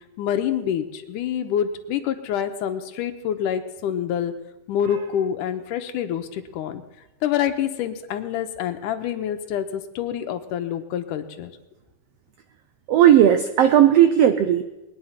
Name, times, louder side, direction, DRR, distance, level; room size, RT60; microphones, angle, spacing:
voice 1, 0.2-4.3 4.7-6.8 7.2-11.5, left 9 dB, 80° left, 7 dB, 2.4 m, -26 dB
voice 2, 12.9-14.6, right 10 dB, 85° right, 9 dB, 1.4 m, -15 dB
21.5 x 9.7 x 5.8 m, 1.0 s
omnidirectional pair, 3.7 m